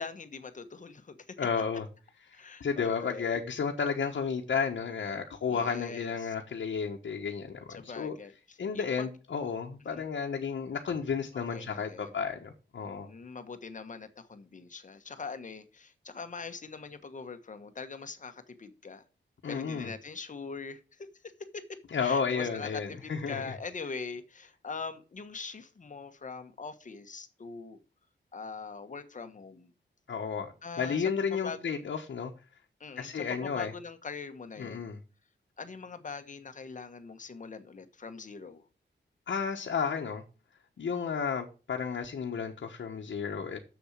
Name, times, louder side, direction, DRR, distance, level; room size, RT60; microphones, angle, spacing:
voice 1, 0.0-1.3 2.3-3.3 5.5-6.3 7.7-9.1 9.9-10.1 11.3-12.2 13.0-19.0 19.5-21.1 21.5-21.6 22.0-27.8 28.3-29.7 30.6-31.6 32.8-34.9 35.6-38.6, left 4 dB, 40° left, 1.2 m, -42 dB
voice 2, 1.4-1.8 2.3-8.2 8.6-13.1 19.4-19.9 21.9-23.5 30.1-32.3 33.0-33.7 34.6-35.0 39.3-40.2 40.8-43.6, left 6 dB, 70° left, 1.2 m, -32 dB
7.1 x 6.9 x 7.4 m
wide cardioid pair, 135°, 19 cm